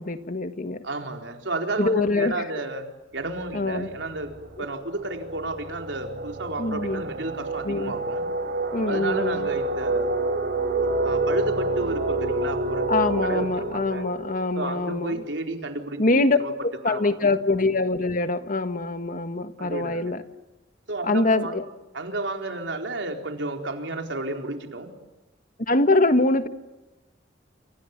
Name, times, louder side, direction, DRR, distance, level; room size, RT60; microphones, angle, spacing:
voice 1, 0.0-0.8 1.8-2.3 3.5-3.9 6.6-7.0 7.6-7.9 8.7-9.5 12.9-15.1 16.0-16.4 16.6-20.2 21.0-21.6 25.7-26.5, left 2 dB, 45° left, 1.5 m, -24 dB
voice 2, 0.8-2.9 3.1-4.3 4.6-8.3 8.9-10.1 11.0-14.0 14.5-16.5 16.8-17.4 19.6-20.1 20.9-21.6 21.9-24.9, right 2 dB, 80° right, 4.2 m, -32 dB
sound 1, 3.3-3.5 3.9-15.4, right 2 dB, 60° right, 4.1 m, -28 dB
29.0 x 27.0 x 7.3 m
head